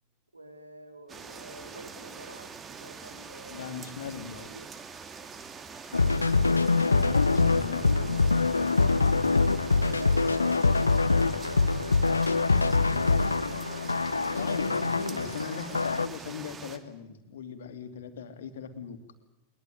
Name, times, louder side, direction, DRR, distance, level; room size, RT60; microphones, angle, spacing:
voice 1, 0.3-3.8 4.4-4.7 7.8-8.0 9.1-13.8, right 2 dB, 80° right, 8 dB, 3.3 m, -47 dB
sound 1, 1.1-16.8, right 5 dB, 20° right, 2.4 m, -44 dB
voice 2, 3.5-4.5 6.8-8.2 14.3-19.0, left 6 dB, 60° left, 9 dB, 2.7 m, -39 dB
sound 2, 5.9-16.1, left 3 dB, 80° left, 0.9 m, -24 dB
22.0 x 21.5 x 9.3 m, 0.93 s
figure-of-eight pair, 90°, 0 cm